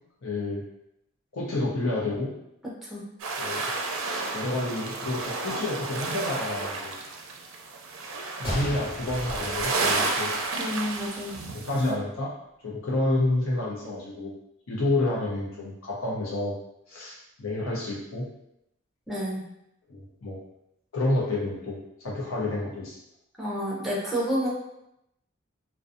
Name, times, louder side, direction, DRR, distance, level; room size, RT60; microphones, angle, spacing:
voice 1, 0.2-0.6 1.3-2.3 3.4-3.7 4.0-6.9 8.1-10.7 11.5-12.3 12.6-14.3 14.7-16.6 16.9-18.3 19.9-20.4 20.9-23.0, left 2 dB, 85° left, -5 dB, 0.7 m, -29 dB
sound 1, 3.2-11.9, right 3 dB, 80° right, 0.4 m, -31 dB
Gunshot gunfire, 8.4-10.5 10.7-10.8 11.5-11.7, equal, 25° left, 1.2 m, -35 dB
voice 2, 10.6-11.4 19.1-19.5 23.4-24.5, equal, ahead, -6 dB, 0.6 m, -29 dB
2.5 x 2.2 x 2.5 m, 0.81 s
head